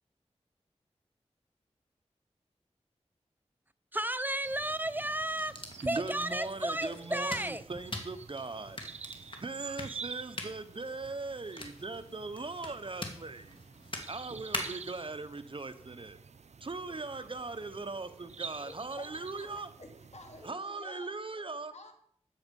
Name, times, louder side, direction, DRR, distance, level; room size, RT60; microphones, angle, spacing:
voice 1, 3.9-5.6 5.8-7.6, right 1 dB, 15° right, 13 dB, 0.6 m, -33 dB
sound 1, 4.4-20.5, right 6 dB, 70° right, 0.5 m, -49 dB
sound 2, 5.4-15.0, left 2 dB, 45° left, 2.4 m, -44 dB
voice 2, 5.8-8.8 9.4-13.6 14.1-16.2 16.6-19.7 20.4-21.7, right 3 dB, 50° right, 11 dB, 0.9 m, -39 dB
voice 3, 18.6-21.1 21.7-21.9, left 2 dB, 70° left, 3 dB, 2.8 m, -51 dB
13.5 x 9.0 x 5.3 m, 0.64 s
wide cardioid pair, 65°, 12 cm